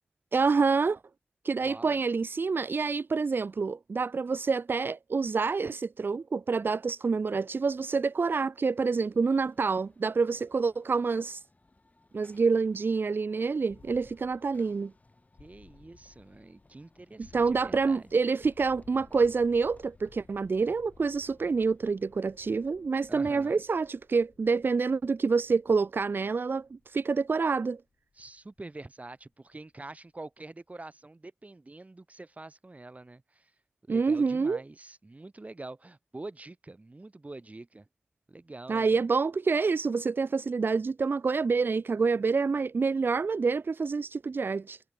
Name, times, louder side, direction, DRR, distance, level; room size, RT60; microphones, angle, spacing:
voice 1, 0.3-1.0 1.4-11.4 12.1-14.9 17.3-27.8 33.9-34.6 38.7-44.8, right 4 dB, 60° right, 0.4 m, -27 dB
voice 2, 1.6-2.0 15.4-18.1 23.1-23.6 28.2-33.5 33.9-37.9 38.3-39.1, right 2 dB, 35° right, 2.7 m, -46 dB
Run / Train, 8.7-23.1, left 2 dB, 40° left, 6.8 m, -64 dB
sound 1, 13.7-29.5, left 4 dB, 90° left, 6.1 m, -59 dB
wide cardioid pair, 75°, 4 cm